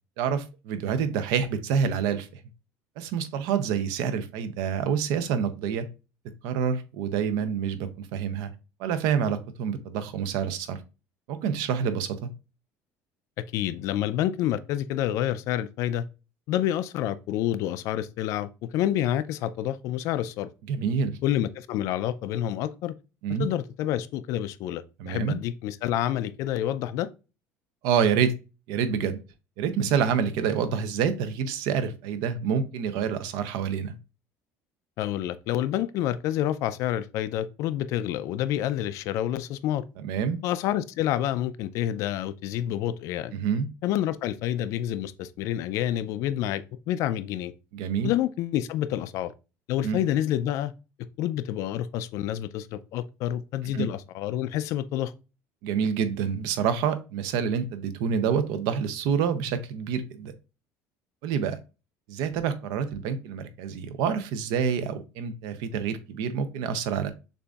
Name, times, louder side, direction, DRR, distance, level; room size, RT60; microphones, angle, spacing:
voice 1, 0.2-2.4 3.0-5.9 6.4-8.5 8.8-10.8 11.3-12.3 20.7-21.2 23.2-23.5 25.0-25.4 27.8-28.3 28.7-29.2 29.6-33.9 40.0-40.4 43.3-43.7 47.7-48.1 49.8-50.0 53.7-53.9 55.6-60.3 61.2-61.6 62.1-67.1, right 7 dB, 75° right, 0.6 m, -27 dB
voice 2, 13.4-16.1 16.5-20.5 21.2-22.9 23.4-27.1 35.0-39.8 40.4-43.3 43.8-47.5 48.0-49.3 49.7-50.7 51.2-55.1, left 12 dB, 55° left, 0.3 m, -28 dB
6.7 x 2.6 x 2.3 m
cardioid pair, 160°, 6 cm